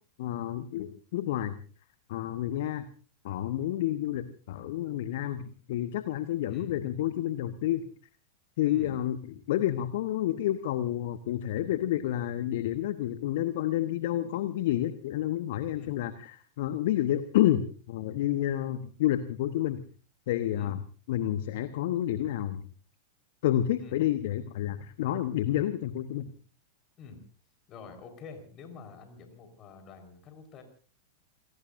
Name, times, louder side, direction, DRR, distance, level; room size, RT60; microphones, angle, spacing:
voice 1, 0.2-1.6 2.1-2.9 3.2-7.8 8.6-9.2 9.5-19.8 20.3-20.8 21.1-22.7 23.4-26.3, left 12 dB, 55° left, 12 dB, 1.0 m, -29 dB
voice 2, 27.7-30.6, left 5 dB, 35° left, 6 dB, 4.4 m, -47 dB
29.5 x 17.5 x 2.6 m, 0.38 s
figure-of-eight pair, 95°, 0 cm